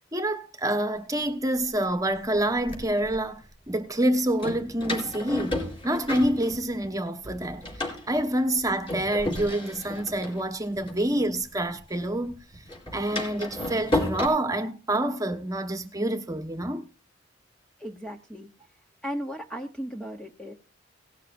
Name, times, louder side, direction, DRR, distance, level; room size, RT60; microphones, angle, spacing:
voice 1, 0.1-12.4 12.9-16.8, right 1 dB, 20° right, 1.2 m, -27 dB
Door, 1.2-1.3 2.1-3.2 4.4-7.0 7.2-11.8 12.0-14.3, left 2 dB, 25° left, 3.9 m, -33 dB
voice 2, 17.8-18.5 19.0-20.5, equal, 5° left, 0.8 m, -36 dB
18.0 x 12.0 x 2.5 m
head